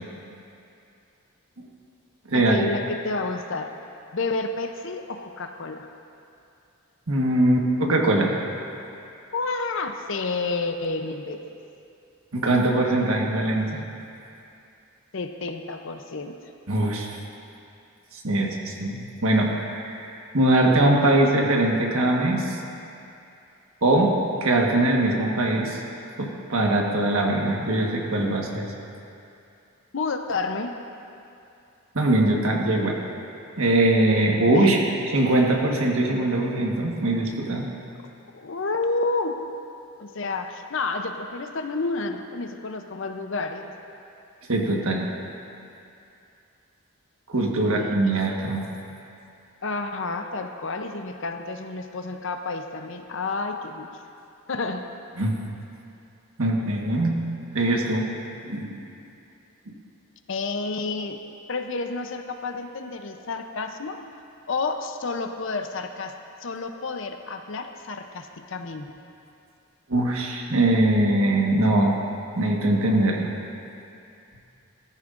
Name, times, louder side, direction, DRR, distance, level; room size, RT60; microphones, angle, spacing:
voice 1, 2.3-3.7 4.1-5.9 9.3-11.4 15.1-16.3 29.9-30.7 34.5-34.7 38.3-39.4 40.0-43.7 47.5-48.2 49.6-53.9 54.5-54.8 60.3-61.2 61.5-64.0 64.5-68.9, left 3 dB, 55° left, 6 dB, 0.6 m, -30 dB
voice 2, 7.1-8.3 12.3-13.8 16.7-17.2 18.1-22.6 23.8-24.1 24.4-25.8 26.2-28.7 31.9-33.0 33.6-34.8 35.1-37.7 44.5-45.1 47.3-48.7 55.2-55.3 56.4-57.2 57.5-58.1 58.4-58.8 59.7-59.8 69.9-72.0 72.4-73.3, right 1 dB, 75° right, 0 dB, 1.4 m, -22 dB
14.5 x 14.0 x 2.5 m, 2.7 s
head